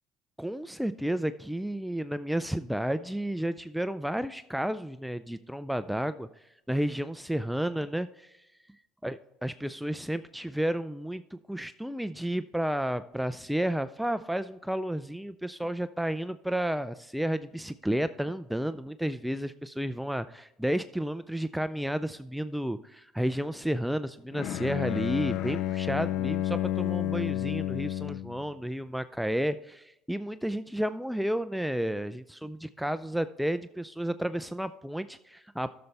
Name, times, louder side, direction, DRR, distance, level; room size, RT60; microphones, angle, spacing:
voice 1, 0.4-8.5 9.0-35.7, right 1 dB, ahead, 12 dB, 0.3 m, -32 dB
Bowed string instrument, 24.3-28.4, left 14 dB, 70° left, 0.4 m, -30 dB
13.5 x 6.9 x 3.3 m, 0.88 s
supercardioid pair, 85°, 0 cm